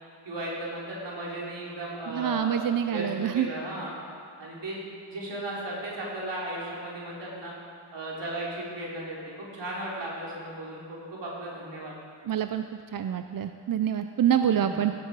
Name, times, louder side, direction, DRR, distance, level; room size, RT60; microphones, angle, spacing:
voice 1, 0.2-3.9 4.4-7.5 7.9-11.9 14.5-14.9, right 1 dB, 75° right, -5 dB, 3.2 m, -36 dB
voice 2, 2.1-3.5 12.2-12.6 12.9-14.9, right 9 dB, 50° right, 8 dB, 0.5 m, -26 dB
16.0 x 7.2 x 4.7 m, 2.3 s
cardioid pair, 55°, 43 cm